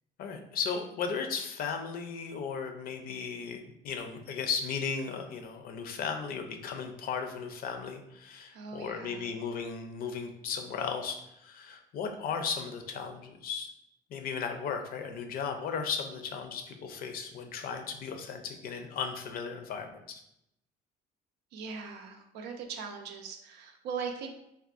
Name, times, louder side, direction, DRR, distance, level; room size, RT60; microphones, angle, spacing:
voice 1, 0.2-13.7 14.1-20.2, left 6 dB, 60° left, 5 dB, 0.5 m, -36 dB
voice 2, 8.5-9.3 21.5-24.3, right 5 dB, 90° right, 4 dB, 0.5 m, -40 dB
3.6 x 2.3 x 2.4 m, 0.81 s
cardioid pair, 110°, 17 cm